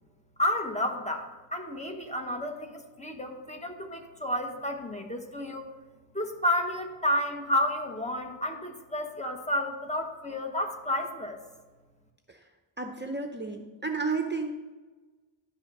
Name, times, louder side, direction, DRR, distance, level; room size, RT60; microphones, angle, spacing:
voice 1, 0.4-5.6 6.1-11.4, left 1 dB, 15° left, 4 dB, 1.1 m, -31 dB
voice 2, 12.8-14.5, right 4 dB, 25° right, 4 dB, 0.6 m, -32 dB
11.5 x 6.1 x 5.3 m, 1.3 s
wide cardioid pair, 100°, 46 cm